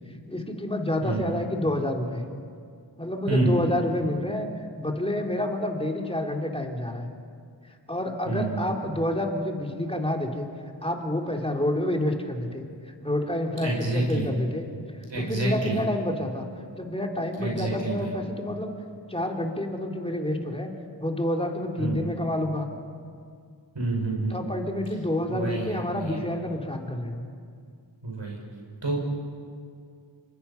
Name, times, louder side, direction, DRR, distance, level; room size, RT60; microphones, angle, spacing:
voice 1, 0.3-2.2 3.0-4.5 4.8-7.1 7.9-10.5 10.8-12.7 13.0-14.7 15.2-16.5 16.7-18.7 19.1-20.7 21.0-22.7 24.3-27.2, left 1 dB, 10° left, 1 dB, 3.0 m, -28 dB
voice 2, 1.0-1.4 3.3-3.6 8.3-8.7 13.6-14.3 15.1-15.8 17.4-18.1 21.8-22.1 23.7-24.4 25.3-26.2 28.0-28.4 28.8-29.0, right 2 dB, 70° right, -1 dB, 6.1 m, -28 dB
27.5 x 24.5 x 5.7 m, 2.2 s
wide cardioid pair, 60°, 46 cm